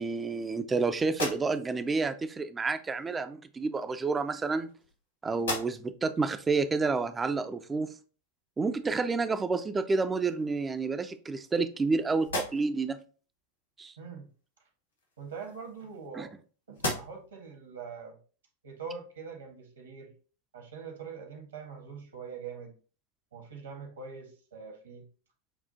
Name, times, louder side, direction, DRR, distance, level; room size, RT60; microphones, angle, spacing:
voice 1, 0.0-4.7 5.2-7.9 8.6-13.0 13.8-13.9 16.2-16.3, right 4 dB, 15° right, 10 dB, 0.4 m, -29 dB
sound 1, 1.1-1.9 3.0-3.2 4.1-5.0 5.3-6.1 6.6-6.7 9.3-9.4 9.9-10.6 11.1-11.9 12.2-12.9 14.9-16.4 16.7-17.4, left 1 dB, 75° left, 1.9 m, -38 dB
voice 2, 14.0-14.3 15.2-16.3 16.7-18.2 18.6-20.1 20.5-22.7 23.3-25.0, right 5 dB, 70° right, 3 dB, 1.3 m, -43 dB
7.2 x 2.4 x 2.7 m, 0.38 s
figure-of-eight pair, 90°, 0 cm